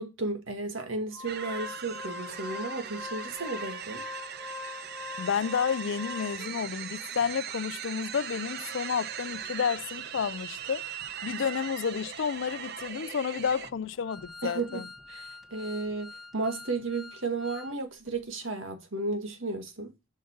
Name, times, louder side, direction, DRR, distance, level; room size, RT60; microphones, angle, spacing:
voice 1, 0.0-4.0 14.4-14.8 15.1-19.9, right 3 dB, 80° right, 1.9 m, -34 dB
Organ, 1.1-6.7 7.2-7.3 7.5-7.7 8.1-17.7 18.1-18.2, left 3 dB, ahead, 1.0 m, -45 dB
sound 1, 1.3-13.7, right 9 dB, 50° right, 0.6 m, -40 dB
voice 2, 5.2-10.8 11.2-14.9, left 6 dB, 70° left, 0.4 m, -31 dB
7.4 x 5.8 x 5.8 m
head